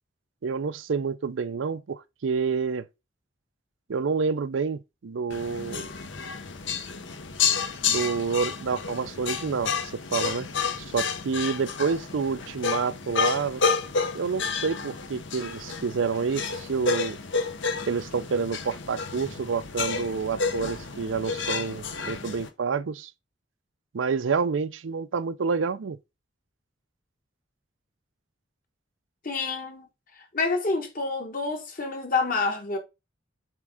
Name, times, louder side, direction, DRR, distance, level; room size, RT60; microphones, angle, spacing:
voice 1, 0.4-2.8 3.9-5.9 7.8-9.7 10.1-10.5 10.9-13.6 14.1-17.2 17.9-23.1 23.9-26.0, right 5 dB, 80° right, 0.5 m, -28 dB
sound 1, 5.3-22.5, left 5 dB, 75° left, 0.9 m, -30 dB
voice 2, 29.2-29.9 30.3-32.8, left 3 dB, 45° left, 1.2 m, -28 dB
7.4 x 3.6 x 3.6 m
head